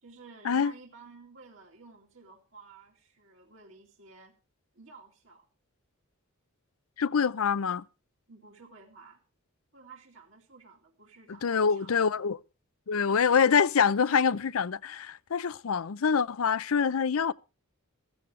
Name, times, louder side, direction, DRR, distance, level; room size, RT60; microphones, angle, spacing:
voice 1, 0.0-4.3 4.7-5.5 8.3-9.2 9.7-12.3, right 4 dB, 65° right, 2.4 m, -53 dB
voice 2, 7.0-7.8 11.4-12.4 12.9-17.3, left 6 dB, 80° left, 0.6 m, -25 dB
15.5 x 15.0 x 3.3 m
head